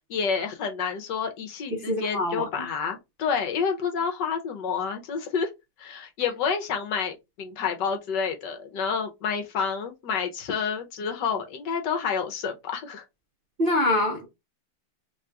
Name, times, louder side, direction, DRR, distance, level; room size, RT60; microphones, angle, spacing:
voice 1, 0.1-5.5 5.8-13.0, left 6 dB, 70° left, 1.4 m, -29 dB
voice 2, 1.7-2.4 13.6-14.3, left 1 dB, 50° right, 0.6 m, -24 dB
3.4 x 2.4 x 4.3 m
omnidirectional pair, 2.1 m